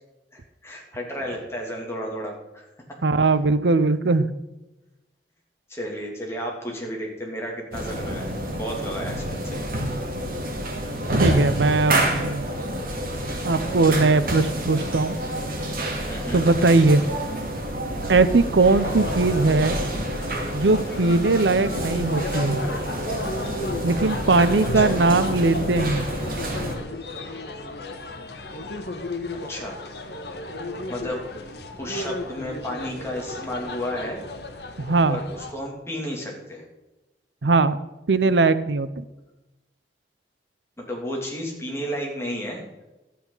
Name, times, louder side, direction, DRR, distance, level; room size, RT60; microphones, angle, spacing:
voice 1, 0.3-2.6 5.7-9.6 16.1-16.4 24.7-25.0 29.3-29.8 30.9-31.2 31.8-34.2 35.1-36.6 40.8-42.6, equal, 15° left, -1 dB, 2.8 m, -32 dB
voice 2, 3.0-4.3 11.2-12.5 13.4-15.2 16.3-17.0 18.1-19.8 20.5-22.6 23.8-26.1 34.8-35.2 37.4-37.8 38.1-39.0, right 3 dB, 90° right, 14 dB, 0.7 m, -20 dB
sound 1, 7.7-26.7, right 1 dB, 55° right, 2.5 m, -28 dB
sound 2, 18.7-35.5, left 2 dB, 70° left, 1.4 m, -34 dB
12.5 x 8.6 x 5.6 m, 1.0 s
head